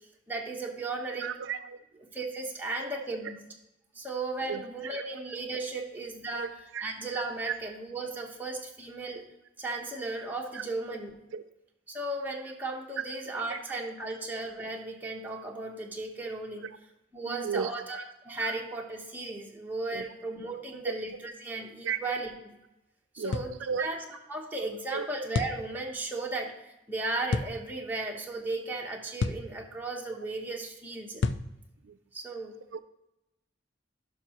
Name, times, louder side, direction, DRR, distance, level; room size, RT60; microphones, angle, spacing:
voice 1, 0.3-1.3 2.1-3.4 3.9-6.5 6.8-9.2 9.6-11.1 11.9-16.6 17.1-22.5 23.1-24.0 24.3-31.2 32.1-32.5, right 2 dB, 10° right, -1 dB, 1.1 m, -35 dB
voice 2, 1.1-1.8 2.8-2.9 3.2-3.3 4.4-5.2 5.7-5.8 6.3-6.9 7.5-7.6 10.5-10.9 11.3-11.4 13.1-13.6 14.0-14.1 16.6-16.7 17.2-17.8 18.4-18.6 19.9-20.1 20.8-20.9 21.8-22.0 23.2-23.9 24.9-25.1 31.8-32.0 32.7-32.8, right 6 dB, 85° right, 11 dB, 0.4 m, -36 dB
sound 1, 23.3-23.6 25.3-25.6 27.3-27.5 29.2-29.5 31.2-31.5, left 4 dB, 65° left, 0.4 m, -29 dB
11.5 x 5.6 x 3.0 m, 0.93 s
head